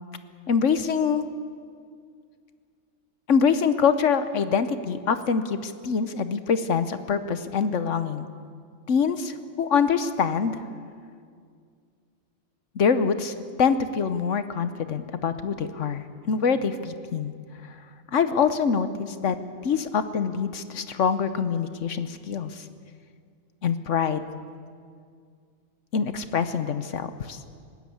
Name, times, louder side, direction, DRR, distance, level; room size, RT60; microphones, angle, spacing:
voice 1, 0.5-1.3 3.3-8.3 8.9-10.6 12.7-17.3 17.6-17.8 18.1-19.4 19.6-22.7 23.6-24.2 25.9-27.4, left 6 dB, 65° left, 11 dB, 1.2 m, -25 dB
20.5 x 16.5 x 8.6 m, 2.1 s
omnidirectional pair, 1.4 m